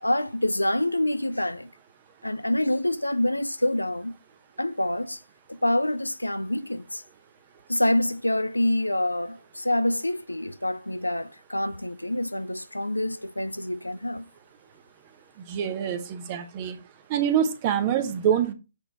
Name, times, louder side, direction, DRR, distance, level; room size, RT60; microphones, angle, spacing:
voice 1, 0.0-1.7 2.2-4.2 4.6-5.2 5.5-7.0 7.7-14.3, left 1 dB, 85° left, 0.5 m, -26 dB
voice 2, 15.5-16.8 17.1-18.5, right 9 dB, 30° right, 1.2 m, -25 dB
8.4 x 3.9 x 4.5 m
figure-of-eight pair, 130°, 0 cm